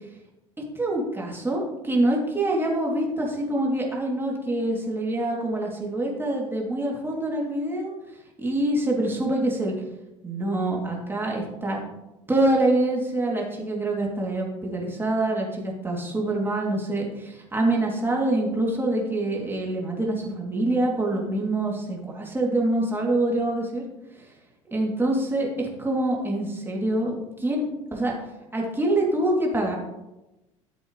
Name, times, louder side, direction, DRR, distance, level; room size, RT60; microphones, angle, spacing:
voice 1, 0.8-7.9 8.4-9.7 10.2-11.8 12.3-23.8 24.7-27.6 27.9-28.1 28.5-29.7, right 1 dB, 15° right, -2 dB, 3.1 m, -25 dB
13.0 x 7.7 x 3.3 m, 0.98 s
hypercardioid pair, 70°, 16 cm